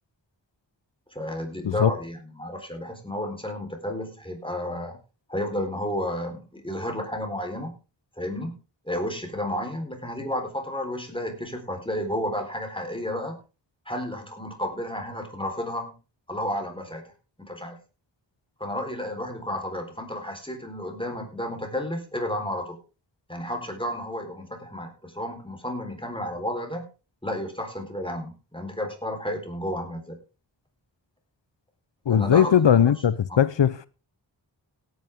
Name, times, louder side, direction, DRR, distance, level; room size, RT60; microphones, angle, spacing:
voice 1, 1.1-5.0 5.3-7.7 8.2-8.5 8.8-13.3 13.9-15.9 16.3-17.1 17.4-17.8 18.6-22.8 23.3-26.8 27.2-30.2 32.1-32.5 33.3-33.4, left 1 dB, 10° left, 4.0 m, -32 dB
voice 2, 32.1-33.8, left 8 dB, 75° left, 0.7 m, -19 dB
17.0 x 9.4 x 3.6 m
wide cardioid pair, 45°, 44 cm